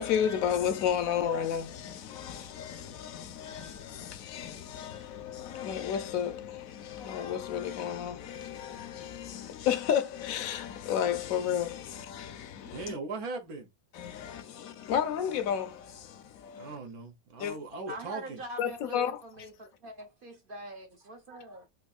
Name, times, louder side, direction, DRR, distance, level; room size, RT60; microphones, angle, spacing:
voice 1, 0.0-12.9 13.9-16.8 17.4-17.6 18.6-19.1, left 9 dB, 75° left, 1.0 m, -32 dB
voice 2, 12.6-13.7 16.6-18.4, right 3 dB, 80° right, 1.4 m, -39 dB
voice 3, 17.9-21.6, right 1 dB, 55° right, 0.6 m, -44 dB
4.4 x 2.6 x 2.4 m
omnidirectional pair, 1.5 m